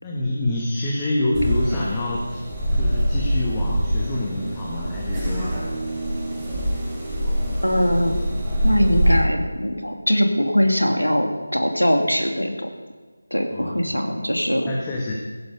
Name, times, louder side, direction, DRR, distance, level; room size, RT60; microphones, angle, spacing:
voice 1, 0.0-2.4 2.7-5.6 13.5-14.2 14.6-15.1, left 1 dB, 15° left, -3 dB, 1.5 m, -26 dB
sound 1, 1.3-9.2, equal, 10° right, 5.1 m, -24 dB
voice 2, 7.6-8.2 8.6-12.7 13.3-14.7, equal, 90° left, 3 dB, 2.7 m, -21 dB
16.0 x 12.0 x 5.2 m, 1.4 s
figure-of-eight pair, 160°, 0 cm